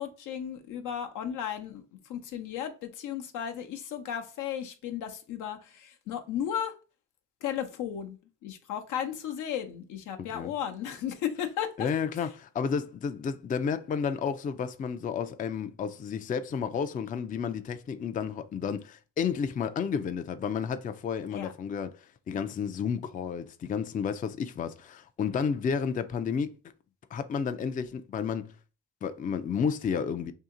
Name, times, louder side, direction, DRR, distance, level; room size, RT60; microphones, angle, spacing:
voice 1, 0.0-1.8 2.1-6.7 7.4-8.2 8.4-11.9 21.3-21.5, left 9 dB, 85° left, 0.7 m, -35 dB
voice 2, 11.8-26.6 27.1-28.6 29.0-30.3, left 6 dB, 30° left, 0.3 m, -31 dB
2.8 x 2.8 x 3.6 m
cardioid pair, 90°, 30 cm